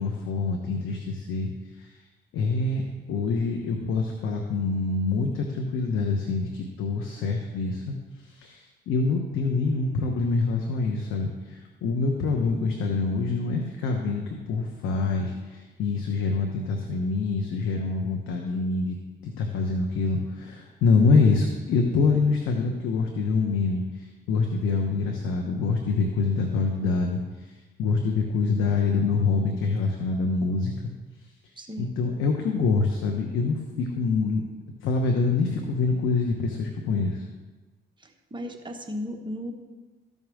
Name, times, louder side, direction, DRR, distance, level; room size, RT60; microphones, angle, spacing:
voice 1, 0.0-1.5 1.7-2.0 2.3-19.0 19.2-30.9 31.2-31.3 31.8-34.4 34.8-37.2, left 4 dB, 85° left, 2 dB, 1.2 m, -26 dB
voice 2, 31.6-31.9 38.0-39.5, left 1 dB, 25° right, 3 dB, 1.3 m, -35 dB
14.0 x 5.5 x 6.3 m, 1.2 s
cardioid pair, 90°, 20 cm